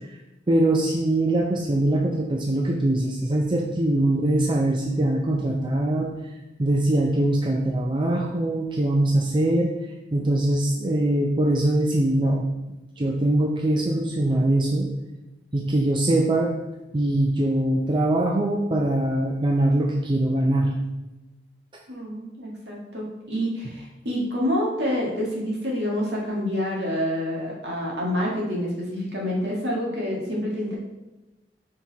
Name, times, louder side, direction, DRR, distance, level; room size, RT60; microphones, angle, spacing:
voice 1, 0.5-6.1 6.6-9.7 10.1-12.5 13.0-14.9 15.5-16.5 16.9-20.7, right 1 dB, 30° right, 0 dB, 0.5 m, -22 dB
voice 2, 21.9-30.8, equal, 70° right, -3 dB, 2.0 m, -27 dB
5.3 x 4.6 x 4.2 m, 1.0 s
head